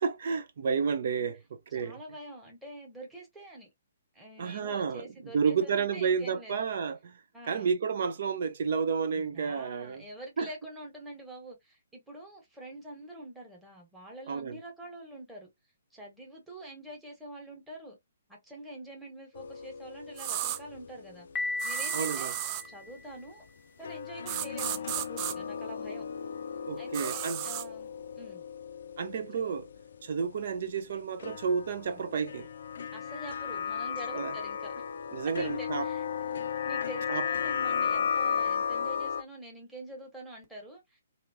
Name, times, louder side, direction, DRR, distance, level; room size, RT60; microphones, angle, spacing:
voice 1, 0.0-2.0 4.4-7.2 7.5-10.0 10.4-10.5 14.3-14.6 21.9-22.3 26.7-27.4 29.0-29.7 30.0-32.5 34.1-34.3 35.1-35.9 37.1-37.2, right 6 dB, 60° right, 0.8 m, -31 dB
voice 2, 1.7-3.7 4.1-6.6 7.3-7.7 9.1-15.5 15.9-18.0 18.3-21.3 21.6-22.3 22.6-23.4 23.8-26.1 26.8-28.4 29.4-29.5 31.8-32.0 32.9-34.7 35.2-41.0, right 1 dB, 5° right, 1.6 m, -46 dB
sound 1, 19.3-21.9 22.2-22.3 23.8-30.3 31.2-39.2, left 7 dB, 65° left, 0.4 m, -35 dB
sound 2, 20.2-20.6 21.6-22.7 24.3-25.3 26.9-27.7, right 12 dB, 30° right, 0.4 m, -34 dB
Piano, 21.4-23.3, left 3 dB, 10° left, 0.7 m, -36 dB
2.9 x 2.8 x 2.8 m
hypercardioid pair, 135°, 0 cm